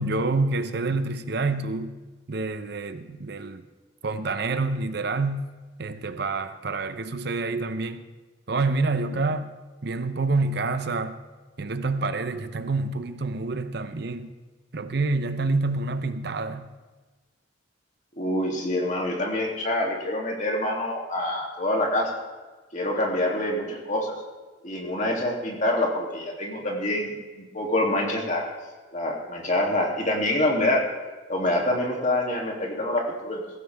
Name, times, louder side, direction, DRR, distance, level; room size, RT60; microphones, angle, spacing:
voice 1, 0.0-2.0 2.3-3.6 4.0-5.4 5.8-8.1 8.5-9.5 9.8-11.2 11.6-14.3 14.7-16.7, right 3 dB, 60° right, 10 dB, 0.8 m, -27 dB
voice 2, 18.2-22.1 22.7-24.1 24.6-28.5 28.9-30.8 31.3-33.4, left 1 dB, 40° left, -1 dB, 2.9 m, -26 dB
16.5 x 16.0 x 3.6 m, 1.3 s
head